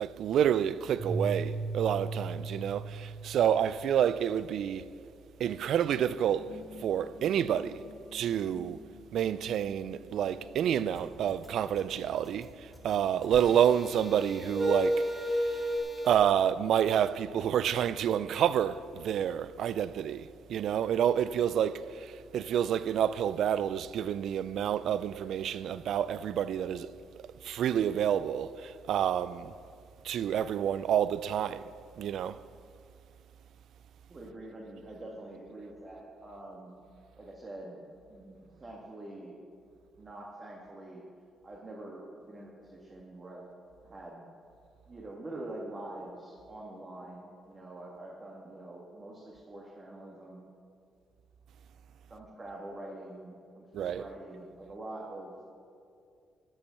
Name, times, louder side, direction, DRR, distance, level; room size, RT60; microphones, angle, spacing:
voice 1, 0.0-4.9 5.4-7.8 8.1-8.8 9.1-15.1 15.3-15.6 16.0-26.9 27.4-29.5 30.0-31.6 32.0-32.4 53.7-54.0, right 9 dB, 70° right, 0.4 m, -29 dB
sound 1, 1.0-4.3 6.4-13.1 14.4-15.8, right 1 dB, 50° right, 2.0 m, -36 dB
sound 2, 10.9-16.1, left 2 dB, 5° left, 2.6 m, -50 dB
voice 2, 34.1-36.7 37.2-39.3 40.0-41.0 41.4-43.4 43.8-44.3 44.9-50.4 52.1-55.3, right 1 dB, 30° right, 1.8 m, -45 dB
12.5 x 7.2 x 6.9 m
cardioid pair, 90°, 0 cm